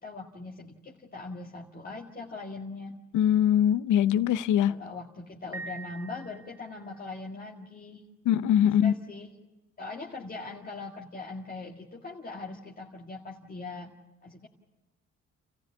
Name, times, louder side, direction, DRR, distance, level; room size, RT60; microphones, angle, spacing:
voice 1, 0.0-3.0 4.7-8.1 8.6-9.3 9.8-13.9 14.2-14.5, left 3 dB, 30° left, 2.1 m, -41 dB
voice 2, 3.1-4.8 8.2-8.9, left 10 dB, 85° left, 0.8 m, -22 dB
Piano, 5.5-7.0, right 3 dB, 10° right, 1.0 m, -43 dB
28.5 x 15.0 x 8.5 m
cardioid pair, 90°, 30 cm